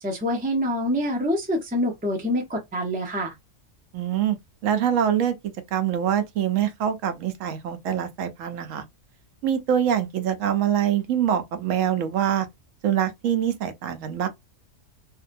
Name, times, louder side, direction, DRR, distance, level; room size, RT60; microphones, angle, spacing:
voice 1, 0.0-3.3, equal, 10° right, 0.4 m, -26 dB
voice 2, 3.9-4.4 4.6-5.3 5.7-8.8 9.4-12.5 12.8-14.3, right 9 dB, 70° right, 0.9 m, -24 dB
2.6 x 2.1 x 2.5 m
omnidirectional pair, 1.5 m